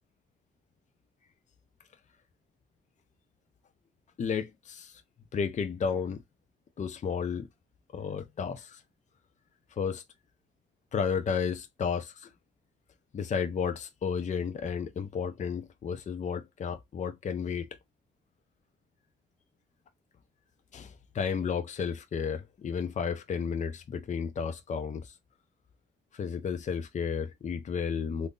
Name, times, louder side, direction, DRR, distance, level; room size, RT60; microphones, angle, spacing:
voice 1, 4.2-5.0 5.3-6.2 6.8-7.5 7.9-8.8 9.7-10.0 10.9-12.3 13.1-17.7 20.7-25.1 26.1-28.3, left 6 dB, 35° left, 0.6 m, -32 dB
3.6 x 2.6 x 2.4 m
cardioid pair, 90°, 20 cm